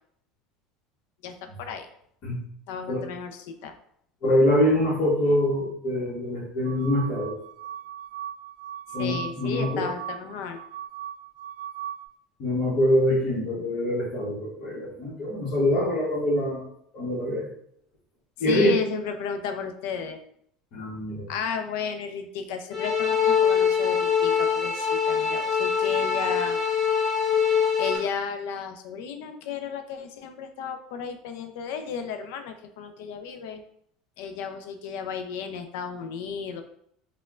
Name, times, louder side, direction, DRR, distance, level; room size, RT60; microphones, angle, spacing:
voice 1, 1.2-1.9 2.7-3.7 9.0-10.6 18.5-20.2 21.3-26.6 27.8-33.6 34.2-36.6, left 6 dB, 75° left, 7 dB, 0.4 m, -33 dB
voice 2, 4.2-7.3 8.9-9.9 12.4-16.7 16.9-17.5 18.4-18.8 20.7-21.3, left 1 dB, 50° left, -8 dB, 1.0 m, -24 dB
sound 1, 6.6-12.1, right 11 dB, 70° right, 0.3 m, -38 dB
sound 2, 22.7-28.0, left 7 dB, 10° left, 1.3 m, -23 dB
4.2 x 2.1 x 2.4 m, 0.69 s
cardioid pair, 155°, 0 cm